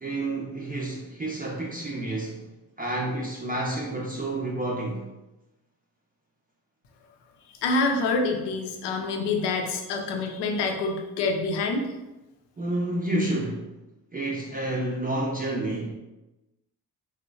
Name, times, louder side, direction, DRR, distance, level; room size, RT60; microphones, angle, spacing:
voice 1, 0.0-2.4 2.8-5.0 12.6-13.7 14.1-15.9, right 1 dB, 20° right, -3 dB, 0.5 m, -29 dB
voice 2, 7.6-11.9, left 3 dB, 70° left, 2 dB, 0.6 m, -26 dB
3.0 x 2.1 x 2.3 m, 1.0 s
hypercardioid pair, 45°, 42 cm